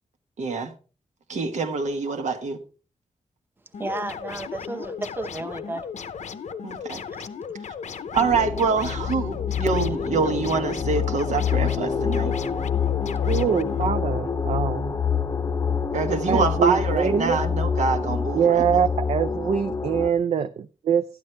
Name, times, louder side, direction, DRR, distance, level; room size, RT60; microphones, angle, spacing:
voice 1, 0.4-0.7 1.3-2.6 6.6-7.0 8.1-12.3 15.9-18.6, right 4 dB, 85° right, 1.2 m, -25 dB
sound 1, 3.7-13.9, left 6 dB, 80° left, 0.7 m, -36 dB
voice 2, 3.8-5.9 7.1-7.2, right 2 dB, 15° right, 0.9 m, -33 dB
sound 2, 8.2-20.1, left 6 dB, 30° left, 0.6 m, -26 dB
voice 3, 13.2-14.9 16.3-17.4 18.3-21.0, right 7 dB, 65° right, 0.4 m, -23 dB
12.5 x 9.5 x 3.3 m
wide cardioid pair, 130°, 12 cm